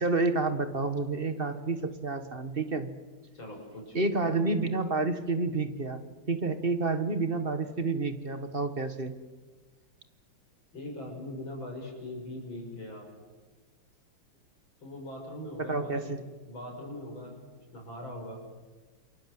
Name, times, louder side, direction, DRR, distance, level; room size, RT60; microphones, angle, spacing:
voice 1, 0.0-2.9 3.9-6.0 6.3-9.1 15.6-16.2, right 3 dB, 30° right, 10 dB, 1.5 m, -29 dB
voice 2, 3.3-4.1 10.7-13.1 14.8-16.1 16.4-17.4 17.7-18.4, left 1 dB, 75° left, 1 dB, 7.1 m, -41 dB
29.0 x 22.0 x 7.8 m, 1.4 s
omnidirectional pair, 2.2 m